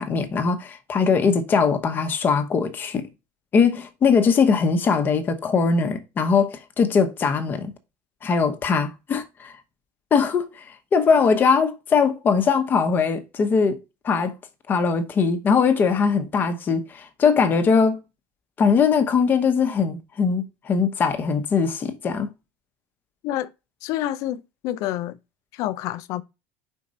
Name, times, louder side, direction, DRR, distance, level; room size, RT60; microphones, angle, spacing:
voice 1, 0.0-3.1 3.5-7.7 8.2-9.5 10.1-13.8 14.0-14.3 14.7-18.0 18.6-22.3, left 5 dB, 30° left, 1.0 m, -21 dB
voice 2, 23.8-25.2 25.5-26.2, left 13 dB, 60° left, 0.5 m, -28 dB
5.0 x 4.5 x 4.1 m
cardioid pair, 135°, 7 cm